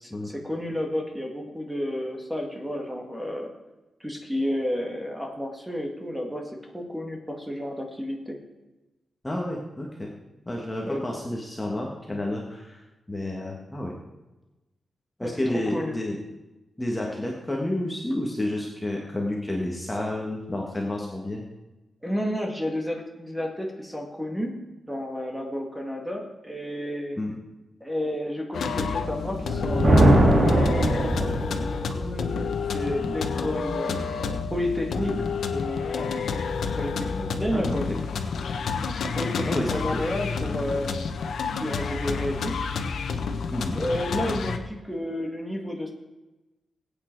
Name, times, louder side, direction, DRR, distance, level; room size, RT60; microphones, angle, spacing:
voice 1, 0.0-3.5 4.0-8.4 10.8-11.1 15.2-16.0 19.9-20.0 22.0-24.6 24.9-27.2 27.8-30.7 31.1-35.1 35.5-36.4 36.8-37.9 39.1-41.1 41.6-42.6 43.7-45.9, equal, 5° right, 2 dB, 2.0 m, -31 dB
voice 2, 9.2-10.1 10.5-12.8 13.1-13.9 15.2-16.2 16.8-21.4 27.2-27.3 37.5-38.0 39.4-40.0 43.5-43.8, left 1 dB, 10° left, -2 dB, 1.6 m, -30 dB
sound 1, 28.5-44.6, left 5 dB, 80° left, 1.2 m, -29 dB
Thunder, 29.3-31.8, right 1 dB, 45° right, 2.3 m, -20 dB
21.0 x 8.9 x 4.6 m, 1.1 s
wide cardioid pair, 175°, 0 cm